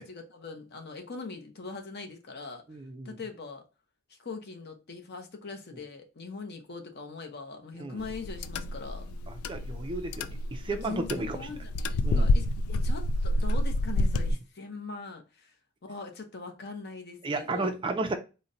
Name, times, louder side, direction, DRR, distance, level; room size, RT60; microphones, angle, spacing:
voice 1, 0.0-2.6 3.0-3.6 4.1-9.1 10.7-15.5 15.8-17.7, left 4 dB, 50° left, 0.7 m, -41 dB
voice 2, 2.7-3.2 7.8-8.0 9.3-11.4 12.0-12.3 17.2-18.2, right 2 dB, 25° right, 0.4 m, -33 dB
sound 1, 8.0-14.3, left 1 dB, 90° left, 0.3 m, -29 dB
4.0 x 2.1 x 3.7 m
head